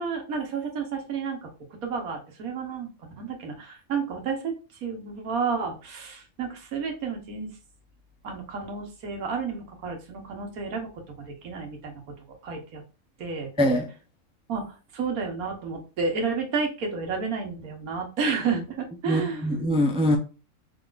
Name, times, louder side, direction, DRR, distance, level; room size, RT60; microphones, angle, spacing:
voice 1, 0.0-1.5 1.8-4.5 4.8-7.5 8.2-10.9 11.2-12.0 12.4-12.8 13.2-13.5 14.5-19.5, right 5 dB, 85° right, 1.6 m, -31 dB
voice 2, 19.1-20.2, equal, 5° right, 0.5 m, -23 dB
5.5 x 3.9 x 2.5 m
omnidirectional pair, 1.5 m